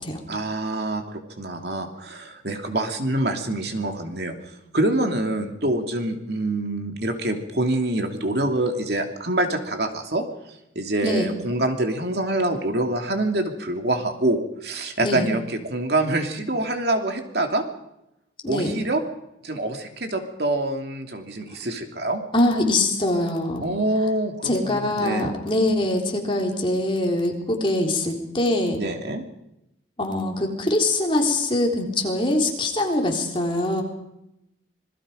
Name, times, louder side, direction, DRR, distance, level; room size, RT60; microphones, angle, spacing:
voice 1, 0.3-4.3 4.7-10.2 10.7-17.6 18.5-19.0 19.4-22.2 23.6-25.3 28.8-29.2, right 1 dB, 60° right, 4 dB, 2.8 m, -25 dB
voice 2, 11.0-11.3 15.0-15.3 18.4-18.7 22.3-23.7 24.4-28.8 30.0-33.8, left 1 dB, 30° left, 1 dB, 3.7 m, -23 dB
27.0 x 21.0 x 5.2 m, 0.85 s
head